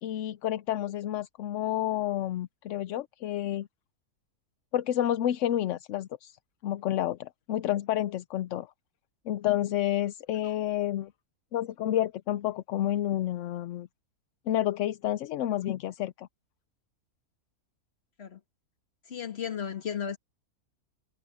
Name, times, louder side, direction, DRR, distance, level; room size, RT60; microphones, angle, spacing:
voice 1, 0.0-3.7 4.7-6.4 6.6-8.7 9.3-11.1 11.5-13.9 14.5-16.3, left 12 dB, 65° left, 0.8 m, -30 dB
voice 2, 19.1-20.2, left 8 dB, 45° left, 1.7 m, -34 dB
omnidirectional pair, 1.6 m